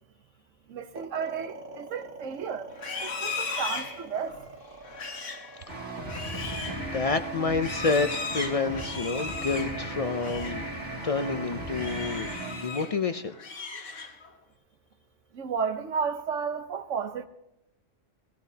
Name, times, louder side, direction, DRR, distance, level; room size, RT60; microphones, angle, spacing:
voice 1, 0.7-2.7 3.0-4.4 15.3-17.3, right 6 dB, 85° right, 1.3 m, -32 dB
sound 1, 0.9-13.2, right 3 dB, 50° right, 1.6 m, -46 dB
Livestock farm animals working animals, 2.7-10.7 11.0-11.3 11.7-13.0 13.3-14.4, left 4 dB, 80° left, 1.5 m, -37 dB
sound 2, 5.7-13.4, right 2 dB, 70° right, 2.9 m, -36 dB
voice 2, 6.7-10.6 11.0-12.3 12.6-13.3, left 4 dB, 50° left, 0.4 m, -29 dB
17.5 x 17.0 x 2.8 m
omnidirectional pair, 1.2 m